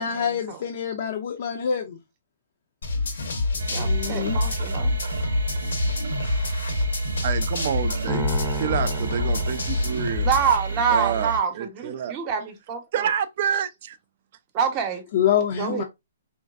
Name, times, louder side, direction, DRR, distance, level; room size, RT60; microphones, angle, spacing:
voice 1, 0.0-2.0 3.7-4.4 15.1-15.8, left 8 dB, 50° left, 0.4 m, -26 dB
sound 1, 2.8-10.6, left 3 dB, 85° left, 0.9 m, -27 dB
sound 2, 3.6-11.4, right 4 dB, 85° right, 0.8 m, -30 dB
voice 2, 3.7-5.0 10.2-13.1 14.5-15.0 15.6-15.8, right 6 dB, 30° right, 0.7 m, -26 dB
voice 3, 7.2-10.3 10.9-12.2 12.9-14.0, right 8 dB, 50° right, 0.4 m, -28 dB
sound 3, 8.1-10.5, left 1 dB, 10° left, 0.6 m, -33 dB
3.1 x 2.5 x 2.3 m
hypercardioid pair, 150°, 0 cm